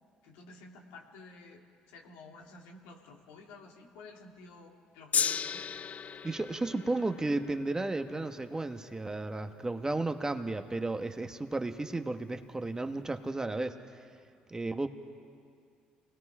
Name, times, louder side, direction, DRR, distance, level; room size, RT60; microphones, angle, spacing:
voice 1, 0.2-1.6 1.9-5.6, left 3 dB, 80° left, 0 dB, 2.9 m, -52 dB
Gong, 5.1-11.5 12.3-12.4, left 7 dB, 45° left, 0.6 m, -37 dB
voice 2, 6.2-13.8 14.5-14.9, right 2 dB, 20° right, 7 dB, 1.5 m, -33 dB
29.5 x 20.0 x 4.9 m, 2.2 s
hypercardioid pair, 60°, 3 cm